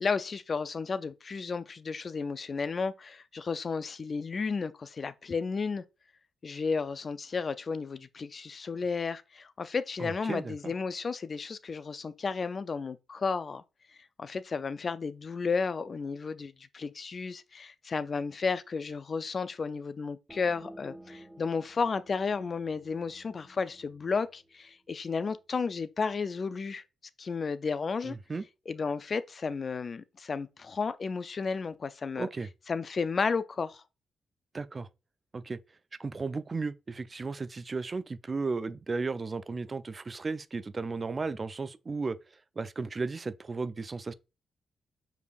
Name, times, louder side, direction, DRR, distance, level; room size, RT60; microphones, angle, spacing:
voice 1, 0.0-5.8 6.4-13.6 14.2-26.8 27.2-28.2 28.7-32.3 32.7-33.8, left 5 dB, 50° left, 0.4 m, -33 dB
voice 2, 10.0-10.7 28.1-28.4 32.2-32.5 34.5-34.9 35.3-35.6 36.0-42.2 42.6-44.1, right 4 dB, 40° right, 0.3 m, -34 dB
sound 1, 20.3-25.7, right 1 dB, 20° right, 1.3 m, -53 dB
4.9 x 3.4 x 2.3 m
supercardioid pair, 50°, 0 cm